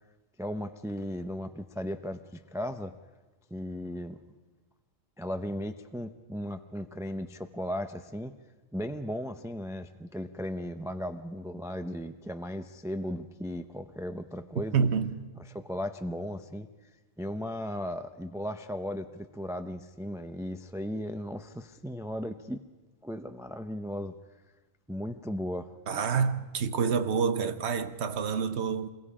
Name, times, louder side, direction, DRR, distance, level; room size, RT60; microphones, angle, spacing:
voice 1, 0.4-2.9 3.5-4.2 5.2-8.3 8.7-14.8 15.5-16.7 17.2-22.6 23.0-24.2 24.9-25.7, equal, 5° right, 0.3 m, -36 dB
voice 2, 14.7-15.2 25.9-28.9, right 6 dB, 55° right, 1.1 m, -28 dB
27.5 x 22.0 x 5.0 m
omnidirectional pair, 1.4 m